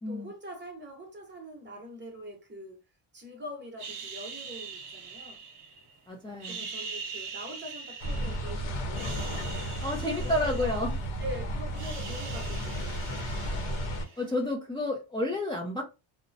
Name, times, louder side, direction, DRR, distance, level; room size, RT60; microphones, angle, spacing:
voice 1, 0.1-2.8 3.1-5.4 6.4-9.2 9.9-10.9 11.2-13.5, equal, 25° right, 0.9 m, -43 dB
sound 1, 3.8-5.9 6.3-8.5 8.9-11.3 11.5-14.4, right 5 dB, 55° right, 1.0 m, -42 dB
voice 2, 6.1-6.7 9.8-11.0 14.2-15.8, left 1 dB, 10° left, 0.5 m, -30 dB
sound 2, 8.0-14.0, equal, 85° left, 1.0 m, -33 dB
2.9 x 2.1 x 2.6 m
cardioid pair, 115°, 47 cm